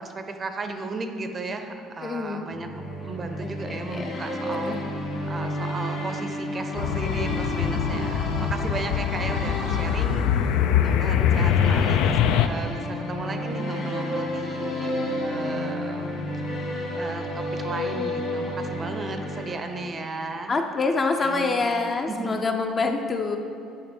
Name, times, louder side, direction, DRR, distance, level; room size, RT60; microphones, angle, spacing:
voice 1, 0.0-4.8 5.2-14.9 15.2-16.1 16.5-20.5 21.2-22.5, right 3 dB, 25° right, 6 dB, 0.6 m, -35 dB
voice 2, 2.0-2.4 3.4-4.1 4.6-4.8 20.5-23.4, left 3 dB, 25° left, 4 dB, 0.5 m, -26 dB
sound 1, 2.5-20.2, left 1 dB, 55° left, 1.9 m, -31 dB
sound 2, 6.8-12.5, left 9 dB, 80° left, 0.4 m, -23 dB
10.0 x 5.2 x 4.4 m, 2.5 s
cardioid pair, 135°, 0 cm